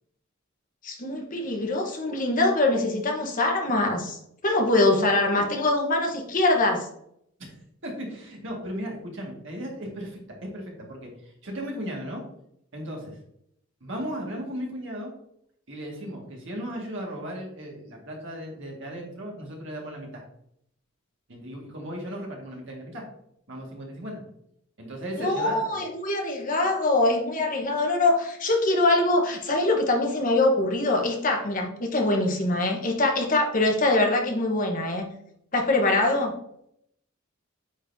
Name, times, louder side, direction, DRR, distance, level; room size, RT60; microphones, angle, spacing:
voice 1, 0.8-4.2 4.4-6.9 25.2-35.1 35.5-36.3, left 2 dB, 40° left, 2 dB, 1.1 m, -23 dB
voice 2, 7.8-12.2 12.7-13.2 13.8-15.1 15.7-20.2 21.3-23.0 23.5-24.2 24.8-25.8, equal, 65° right, -1 dB, 1.9 m, -36 dB
8.9 x 4.0 x 2.7 m, 0.73 s
head